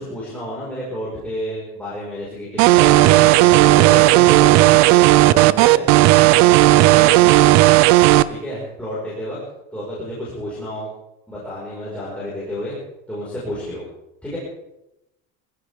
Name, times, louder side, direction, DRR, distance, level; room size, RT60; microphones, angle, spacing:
voice 1, 0.0-5.9 6.3-7.6 8.3-9.4 9.7-10.9 11.3-12.8 13.1-13.8 14.2-14.4, left 1 dB, 5° left, -8 dB, 5.4 m, -30 dB
sound 1, 2.6-8.2, right 17 dB, 60° right, 0.6 m, -12 dB
24.0 x 15.5 x 3.7 m, 0.89 s
cardioid pair, 160°, 31 cm